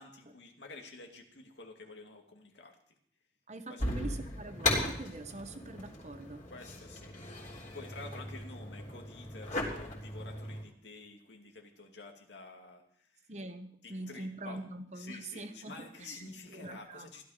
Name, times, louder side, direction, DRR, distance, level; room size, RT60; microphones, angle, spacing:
voice 1, 0.0-2.8 3.7-4.1 6.5-7.2 7.7-13.3 13.8-14.6 15.0-17.2, left 3 dB, 85° left, 3 dB, 2.5 m, -50 dB
voice 2, 3.5-6.5 13.3-17.1, right 2 dB, 40° right, 8 dB, 1.2 m, -44 dB
sound 1, 3.8-10.6, left 2 dB, 40° left, 3.6 m, -37 dB
16.0 x 12.0 x 5.1 m, 0.65 s
head